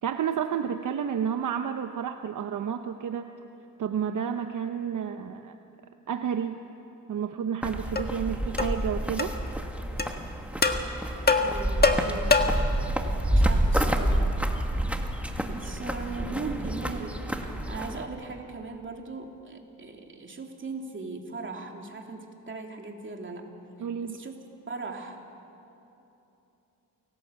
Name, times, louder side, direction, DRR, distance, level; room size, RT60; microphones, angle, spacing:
voice 1, 0.0-3.3 3.8-5.5 6.1-6.7 7.1-9.3 23.8-24.2, right 8 dB, 65° right, 7 dB, 1.0 m, -30 dB
sound 1, 7.6-18.1, right 1 dB, 5° right, 1.9 m, -28 dB
sound 2, 8.0-8.1 8.6-8.8 9.2-9.3 10.0-10.1 10.6-10.8 11.3-12.7, left 4 dB, 30° left, 1.7 m, -23 dB
voice 2, 11.4-12.4 13.3-14.3 15.4-23.5 23.8-24.3 24.7-25.2, right 3 dB, 35° right, 2 dB, 3.1 m, -39 dB
28.0 x 18.5 x 8.1 m, 2.9 s
cardioid pair, 90°, 33 cm